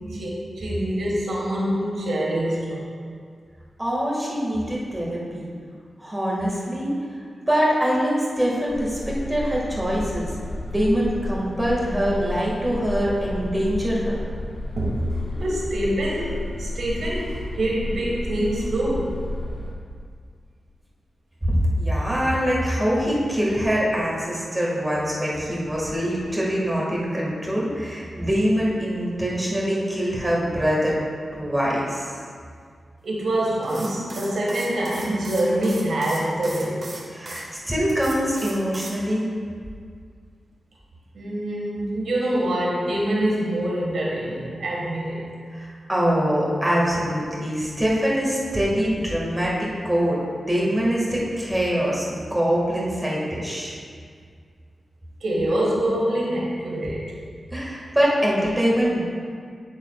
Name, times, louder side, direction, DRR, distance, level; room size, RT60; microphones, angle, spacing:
voice 1, 0.0-2.9 14.8-19.1 33.0-36.9 41.1-45.3 55.2-57.1, right 1 dB, 85° right, -3 dB, 1.7 m, -25 dB
voice 2, 3.8-5.5 6.0-6.9 7.4-10.3 10.7-14.2 21.4-31.0 31.3-32.1 37.1-39.3 45.5-53.8 57.5-59.0, equal, 15° right, -5 dB, 1.9 m, -24 dB
sound 1, 8.7-19.7, left 1 dB, 55° left, 2.0 m, -32 dB
sound 2, 33.6-37.4 37.9-39.0, right 2 dB, 50° right, 1.5 m, -38 dB
8.9 x 8.8 x 2.4 m, 2.1 s
wide cardioid pair, 130°, 0 cm